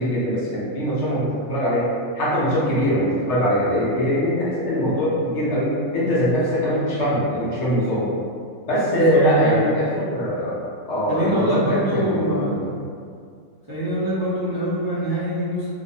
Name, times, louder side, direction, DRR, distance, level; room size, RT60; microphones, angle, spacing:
voice 1, 0.0-1.9 2.1-8.1 8.7-10.6 10.9-12.6, equal, 65° left, -8 dB, 0.8 m, -22 dB
voice 2, 8.9-9.7 11.1-12.6 13.7-15.7, equal, 35° right, -12 dB, 0.3 m, -24 dB
2.5 x 2.0 x 2.6 m, 2.2 s
omnidirectional pair, 1.5 m